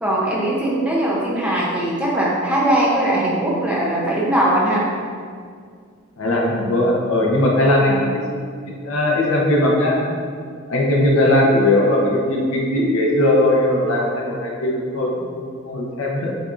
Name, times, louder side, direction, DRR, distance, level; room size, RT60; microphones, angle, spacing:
voice 1, 0.0-4.9 7.9-8.0, right 1 dB, 5° right, -6 dB, 0.6 m, -20 dB
voice 2, 6.2-8.2 8.8-10.0 10.7-16.3, left 1 dB, 85° left, -3 dB, 0.8 m, -18 dB
7.7 x 2.6 x 2.5 m, 2.1 s
head